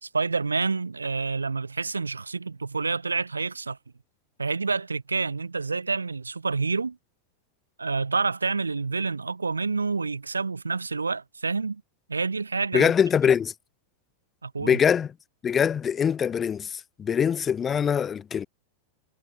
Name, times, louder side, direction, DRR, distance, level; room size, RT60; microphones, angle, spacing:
voice 1, 0.0-3.8 4.4-7.0 7.8-11.8 12.1-12.9 14.4-14.8, right 4 dB, 80° right, 2.6 m, -28 dB
voice 2, 12.7-13.5 14.6-15.1 15.4-18.5, left 7 dB, 20° left, 2.1 m, -23 dB
figure-of-eight pair, 90°, 0 cm